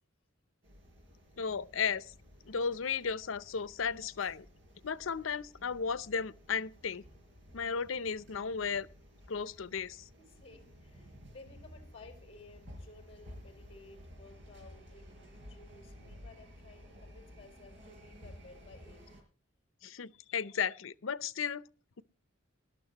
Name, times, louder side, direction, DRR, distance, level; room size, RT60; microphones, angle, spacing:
sound 1, 0.6-19.2, equal, 65° right, 5.3 m, -54 dB
voice 1, 1.4-2.1 2.4-4.4 4.8-7.0 7.5-8.9 9.3-10.0 19.8-21.6, left 6 dB, 90° left, 0.7 m, -34 dB
voice 2, 10.2-19.0 20.0-20.1, left 3 dB, 30° left, 4.5 m, -56 dB
20.0 x 12.5 x 3.0 m
head